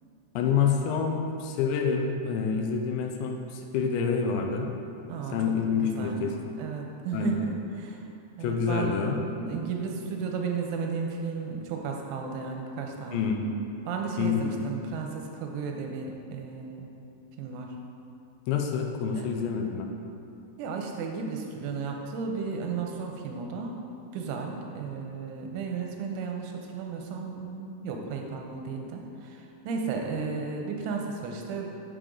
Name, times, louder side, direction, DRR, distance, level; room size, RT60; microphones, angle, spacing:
voice 1, 0.4-4.7 5.3-6.5 7.1-7.4 8.4-9.2 13.1-13.4 14.2-14.5 18.5-19.9, left 6 dB, 80° left, 2 dB, 2.8 m, -27 dB
voice 2, 5.1-5.6 6.0-6.2 6.6-8.1 8.4-13.3 13.9-16.9 17.4-17.7 19.2-19.3 20.6-23.8 24.1-31.7, right 5 dB, 90° right, 2 dB, 3.3 m, -34 dB
9.4 x 6.5 x 3.8 m, 2.6 s
omnidirectional pair, 5.3 m